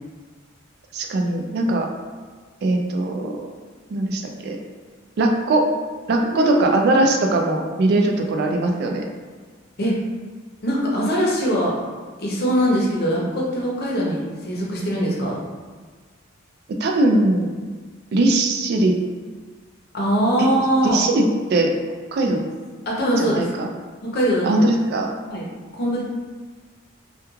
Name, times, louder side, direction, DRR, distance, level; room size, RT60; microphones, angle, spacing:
voice 1, 0.9-1.9 2.6-3.3 3.9-4.6 5.2-5.6 6.1-9.0 16.7-17.5 18.1-18.9 20.4-20.5 20.8-21.7 22.1-22.4 23.2-23.7 24.4-25.1, right 2 dB, 55° right, 2 dB, 0.3 m, -20 dB
voice 2, 10.6-11.8 12.2-15.4 19.9-21.0 22.3-22.4 22.9-23.5 24.0-24.6 25.3-25.4 25.7-26.0, equal, 55° left, -4 dB, 0.6 m, -22 dB
2.3 x 2.2 x 3.0 m, 1.5 s
head